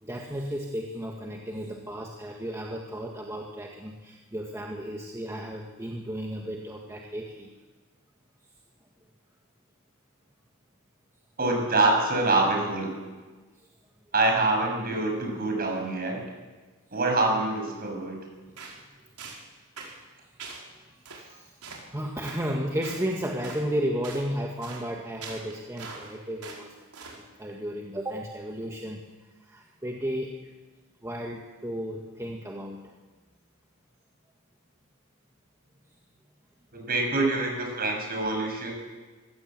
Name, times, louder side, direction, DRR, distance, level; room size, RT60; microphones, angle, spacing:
voice 1, 0.0-7.5 19.0-19.1 20.7-21.6 21.9-26.7 27.1-29.0 29.4-30.5 31.0-32.8, equal, 15° right, 0 dB, 1.7 m, -34 dB
voice 2, 11.4-12.9 14.1-16.2 16.9-18.2 36.7-38.7, right 2 dB, 40° right, 2 dB, 6.8 m, -25 dB
sound 1, 18.6-18.8 19.2-19.4 19.8-20.0 20.4-20.6 21.1-21.2 21.6-21.8 22.2-22.4 22.8-23.0 23.4-23.7 24.0-24.2 24.6-24.8 25.2-26.1 26.4-26.6 26.9-27.2, right 4 dB, 75° right, 4.9 m, -42 dB
24.5 x 17.0 x 7.8 m, 1.3 s
head